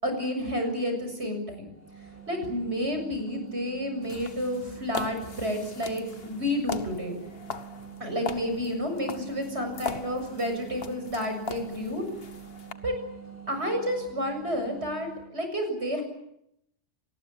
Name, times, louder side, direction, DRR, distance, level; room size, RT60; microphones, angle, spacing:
voice 1, 0.0-1.7 2.0-7.2 8.0-12.0 12.8-12.9 13.5-16.0, equal, 60° right, 5 dB, 7.3 m, -30 dB
sound 1, 1.7-15.3, right 8 dB, 10° left, 5.8 m, -46 dB
sound 2, 4.0-12.7, left 5 dB, 50° left, 1.5 m, -40 dB
27.0 x 20.5 x 8.6 m, 0.78 s
omnidirectional pair, 1.3 m